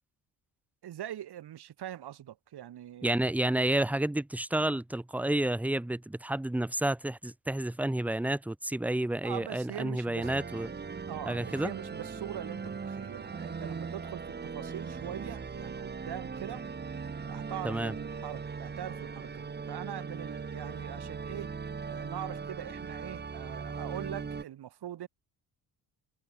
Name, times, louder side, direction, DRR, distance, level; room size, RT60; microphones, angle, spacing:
voice 1, 0.8-3.2 9.2-10.3 11.1-16.6 17.2-21.5 21.9-25.1, right 11 dB, 65° right, 2.3 m, -42 dB
voice 2, 3.0-10.7 11.3-11.7 17.6-17.9, right 1 dB, 5° right, 0.8 m, -30 dB
sound 1, 10.2-24.4, right 5 dB, 25° right, 1.1 m, -39 dB
cardioid pair, 110°, 42 cm